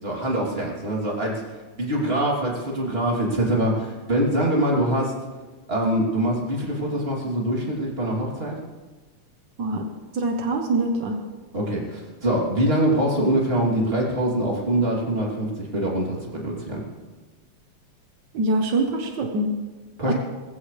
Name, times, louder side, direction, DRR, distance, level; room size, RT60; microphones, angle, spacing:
voice 1, 0.0-5.1 5.7-8.5 11.5-16.8 20.0-20.1, right 1 dB, 20° right, -3 dB, 3.0 m, -24 dB
voice 2, 9.6-9.9 10.1-11.2 18.3-19.5 20.1-20.2, right 2 dB, 75° right, 3 dB, 1.0 m, -24 dB
20.0 x 15.5 x 3.3 m, 1.3 s
omnidirectional pair, 3.5 m